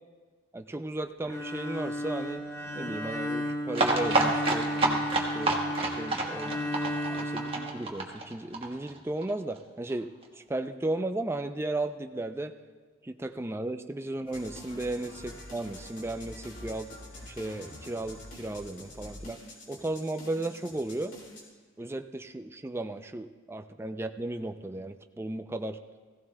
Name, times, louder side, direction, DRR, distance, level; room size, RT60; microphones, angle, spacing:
voice 1, 0.5-2.4 2.8-5.0 5.3-12.5 13.0-16.9 17.2-21.1 21.8-25.8, right 2 dB, 15° right, 7 dB, 0.4 m, -35 dB
Bowed string instrument, 1.2-8.4, equal, 15° left, 0.8 m, -34 dB
sound 1, 3.7-9.3 9.6-9.7 9.9-10.0 10.2-10.3, right 2 dB, 30° right, 1.2 m, -28 dB
sound 2, 14.3-21.4, left 1 dB, 70° left, 2.5 m, -46 dB
16.0 x 16.0 x 2.2 m, 1.4 s
head